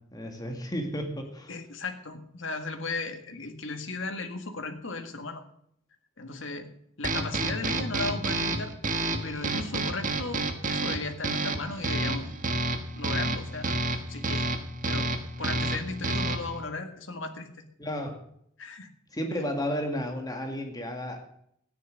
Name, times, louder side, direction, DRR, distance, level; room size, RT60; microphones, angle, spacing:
voice 1, 0.0-1.5 17.8-18.3 19.1-21.2, equal, 20° left, 3 dB, 2.1 m, -33 dB
voice 2, 1.5-5.4 6.2-6.7 7.0-8.7 9.2-12.3 12.9-13.7 14.1-14.5 14.8-15.1 15.4-17.5 18.6-18.9, left 3 dB, 80° left, 6 dB, 1.9 m, -36 dB
sound 1, 7.0-16.6, right 2 dB, 45° right, 1.4 m, -30 dB
13.5 x 9.8 x 6.5 m, 0.69 s
head